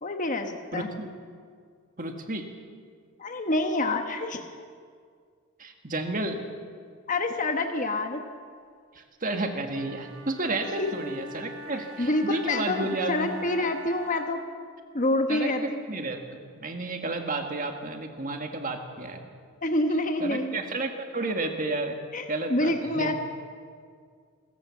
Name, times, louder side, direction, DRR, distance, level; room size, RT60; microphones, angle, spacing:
voice 1, 0.0-0.9 3.2-4.4 7.1-8.2 10.8-10.9 12.0-14.4 14.9-15.8 19.6-20.6 22.1-23.1, left 2 dB, 35° left, 5 dB, 1.2 m, -27 dB
voice 2, 0.7-1.1 2.0-2.5 5.6-6.5 8.9-13.3 15.3-19.3 20.2-22.0 22.3-23.1, right 2 dB, 35° right, 4 dB, 1.9 m, -32 dB
Wind instrument woodwind instrument, 9.7-14.5, right 1 dB, 60° right, 2.3 m, -43 dB
27.5 x 14.0 x 7.2 m, 2.1 s
head